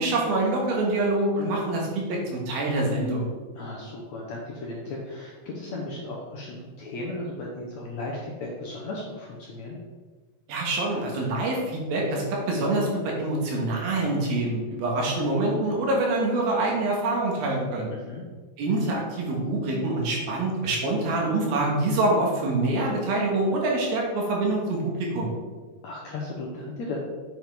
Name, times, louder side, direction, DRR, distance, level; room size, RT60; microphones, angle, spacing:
voice 1, 0.0-3.3 10.5-17.9 18.6-25.3, right 2 dB, 75° right, -1 dB, 3.3 m, -25 dB
voice 2, 3.5-9.8 17.9-18.2 25.8-27.0, left 2 dB, 70° left, -3 dB, 1.8 m, -36 dB
7.7 x 7.7 x 3.6 m, 1.4 s
omnidirectional pair, 4.4 m